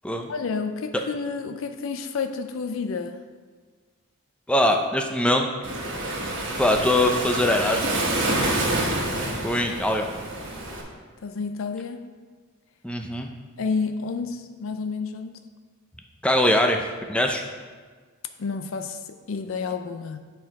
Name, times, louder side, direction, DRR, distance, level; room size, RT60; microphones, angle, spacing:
voice 1, 0.3-3.2 11.2-12.1 13.6-15.3 18.4-20.2, left 5 dB, 65° left, 8 dB, 0.4 m, -30 dB
voice 2, 4.5-5.5 6.6-7.8 9.4-10.1 12.8-13.3 16.2-17.4, left 1 dB, 5° left, 3 dB, 0.4 m, -22 dB
Waves surf, 5.6-10.8, right 1 dB, 60° right, 1.4 m, -27 dB
7.9 x 4.5 x 4.7 m, 1.5 s
head